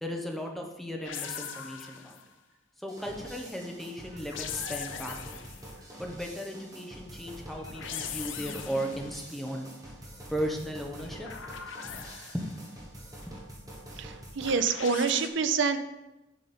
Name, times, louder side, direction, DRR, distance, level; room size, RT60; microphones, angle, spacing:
voice 1, 0.0-2.2 2.8-5.4 6.0-9.9 10.3-11.3 12.3-12.6, equal, ahead, 1 dB, 0.9 m, -36 dB
sound 1, 1.0-2.3 4.1-5.7 7.5-9.1 10.9-12.6 14.4-15.3, left 7 dB, 75° left, 0.7 m, -40 dB
sound 2, 2.9-14.6, right 1 dB, 20° right, 1.4 m, -46 dB
voice 2, 14.0-15.8, right 5 dB, 65° right, 11 dB, 0.5 m, -27 dB
7.3 x 5.3 x 4.2 m, 0.98 s
head